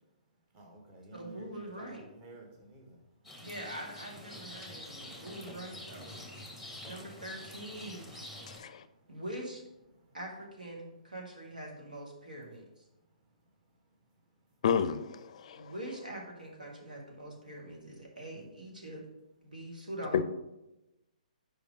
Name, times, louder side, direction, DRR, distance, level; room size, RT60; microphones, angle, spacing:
voice 1, 0.5-3.0 3.3-3.5 6.4-6.9 8.4-9.2 10.0-10.2, right 2 dB, 30° right, 1 dB, 1.5 m, -53 dB
voice 2, 1.1-2.1 3.4-6.1 6.8-8.2 9.1-9.6 10.1-12.8 15.6-19.1 19.4-20.2, right 1 dB, 85° right, -1 dB, 1.8 m, -43 dB
Rain, 3.2-8.6, left 1 dB, 5° right, 1.1 m, -47 dB
voice 3, 8.5-8.9 14.6-15.7 20.1-20.2, left 7 dB, 55° left, 13 dB, 0.4 m, -30 dB
5.1 x 4.9 x 4.8 m, 0.95 s
figure-of-eight pair, 130°, 4 cm